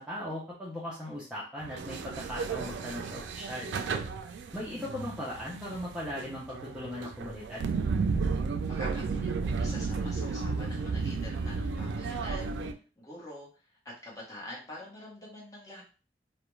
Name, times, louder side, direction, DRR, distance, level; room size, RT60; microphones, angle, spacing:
voice 1, 0.0-3.7 4.5-7.7, left 1 dB, 5° right, -7 dB, 0.5 m, -38 dB
sound 1, 1.6-12.7, right 4 dB, 85° right, 0.3 m, -33 dB
voice 2, 8.6-12.5 13.0-13.5 14.0-15.8, left 1 dB, 20° left, -5 dB, 0.9 m, -45 dB
2.4 x 2.1 x 3.0 m, 0.35 s
head